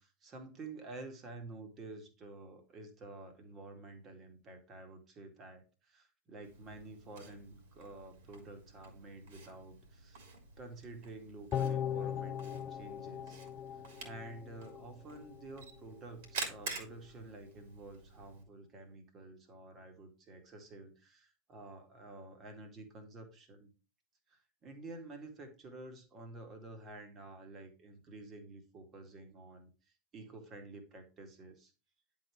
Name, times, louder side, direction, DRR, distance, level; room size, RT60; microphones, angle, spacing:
voice 1, 0.0-10.2 10.6-13.4 14.0-23.7 24.3-29.7 30.1-31.7, right 2 dB, 30° right, 5 dB, 2.1 m, -50 dB
Camera, 6.4-18.4, right 4 dB, 55° right, 2.9 m, -49 dB
sound 1, 11.5-14.8 15.2-15.3, left 9 dB, 30° left, 0.7 m, -38 dB
10.5 x 4.1 x 4.7 m, 0.32 s
figure-of-eight pair, 85°, 0 cm